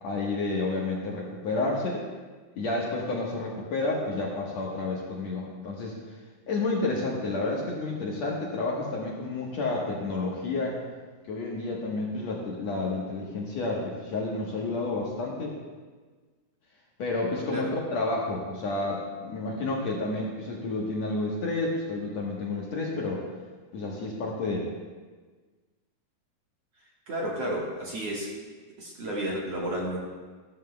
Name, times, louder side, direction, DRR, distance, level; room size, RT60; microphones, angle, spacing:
voice 1, 0.0-2.1 2.6-6.0 6.5-10.8 11.3-15.6 17.0-23.2 23.7-24.7, left 2 dB, 60° left, -3 dB, 2.0 m, -30 dB
voice 2, 27.1-28.3 28.8-30.0, right 1 dB, 55° right, -4 dB, 2.1 m, -31 dB
14.5 x 13.5 x 2.2 m, 1.4 s
omnidirectional pair, 4.1 m